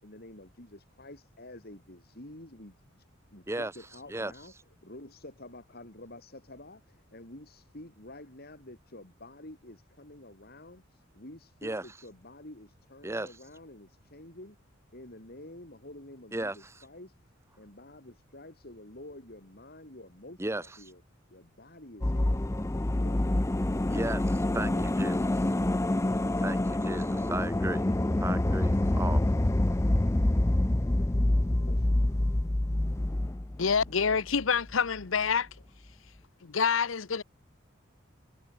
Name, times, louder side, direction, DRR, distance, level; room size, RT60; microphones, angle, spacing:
voice 1, 0.0-3.1 3.3-4.5 4.8-14.6 14.9-17.2 17.6-21.0 21.3-22.4 31.7-32.0, left 1 dB, 50° left, 5.2 m, -49 dB
sound 1, 22.0-34.4 34.7-34.8, left 1 dB, 15° left, 0.5 m, -27 dB
voice 2, 23.9-24.2 24.5-25.1 26.4-27.9 28.2-29.2, right 2 dB, 15° right, 0.8 m, -34 dB
voice 3, 33.6-35.5 36.4-37.2, left 6 dB, 75° left, 0.8 m, -27 dB
head